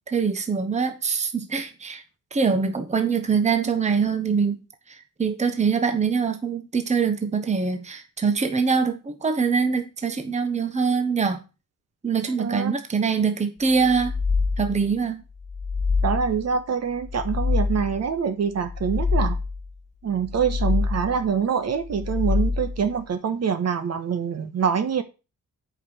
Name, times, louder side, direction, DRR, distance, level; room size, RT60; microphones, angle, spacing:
voice 1, 0.1-2.0 2.3-4.6 4.9-11.4 12.0-14.1 14.6-15.2, right 5 dB, 20° right, 1.2 m, -23 dB
voice 2, 12.4-12.7 16.0-19.4 20.0-25.0, right 7 dB, 50° right, 1.4 m, -25 dB
sound 1, 13.8-14.9 15.4-16.5 17.0-18.1 18.6-19.7 20.2-21.3 21.8-22.9, left 4 dB, 30° left, 1.4 m, -26 dB
8.4 x 5.4 x 6.5 m
cardioid pair, 120°, 33 cm